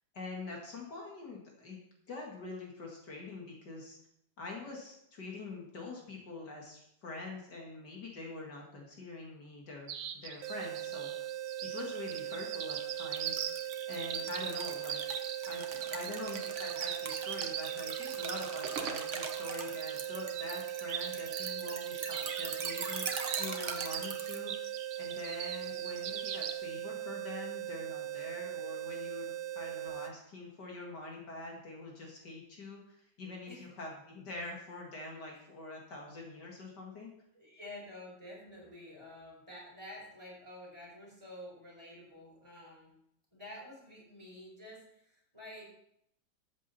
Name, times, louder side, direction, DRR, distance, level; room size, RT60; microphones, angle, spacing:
voice 1, 0.1-1.8 2.1-4.0 4.4-11.1 11.6-13.5 13.9-15.0 15.5-24.7 25.0-37.1, left 3 dB, 60° left, -1 dB, 2.5 m, -45 dB
sound 1, 9.9-26.5, right 8 dB, 90° right, 1.6 m, -41 dB
sound 2, 10.4-30.1, right 12 dB, 70° right, 1.2 m, -40 dB
sound 3, 13.2-24.4, right 5 dB, 45° right, 1.3 m, -42 dB
voice 2, 37.3-42.9 43.3-45.7, left 1 dB, 15° right, -4 dB, 4.7 m, -49 dB
13.5 x 8.5 x 4.2 m, 0.74 s
omnidirectional pair, 2.1 m